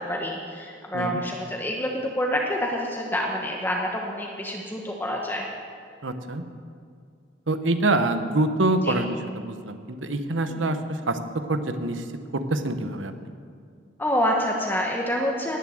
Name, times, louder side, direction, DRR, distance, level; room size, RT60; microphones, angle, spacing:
voice 1, 0.0-5.5 8.8-9.0 10.5-10.7 14.0-15.6, equal, 10° left, -1 dB, 1.1 m, -27 dB
voice 2, 6.0-6.4 7.5-11.2 11.5-12.0 12.3-13.1, right 2 dB, 80° right, 9 dB, 1.1 m, -25 dB
19.5 x 7.3 x 7.8 m, 2.2 s
head